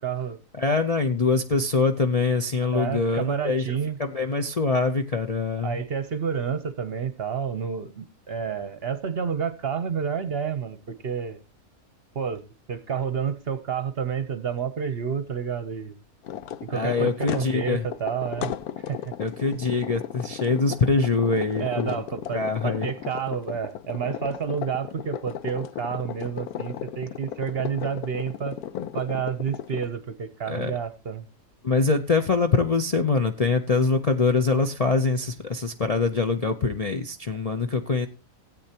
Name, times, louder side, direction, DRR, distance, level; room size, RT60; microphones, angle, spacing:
voice 1, 0.0-0.4 2.7-4.0 5.6-11.4 12.1-12.4 12.7-15.9 16.6-18.5 18.8-19.1 21.6-28.6 28.9-31.2, right 7 dB, 50° right, 0.9 m, -29 dB
voice 2, 0.6-5.8 16.7-17.9 19.2-22.0 22.3-22.9 28.7-28.9 30.5-30.7 31.6-38.1, left 4 dB, 40° left, 0.5 m, -24 dB
sound 1, 16.2-29.9, left 10 dB, 90° left, 1.2 m, -35 dB
17.0 x 8.6 x 2.8 m
omnidirectional pair, 1.5 m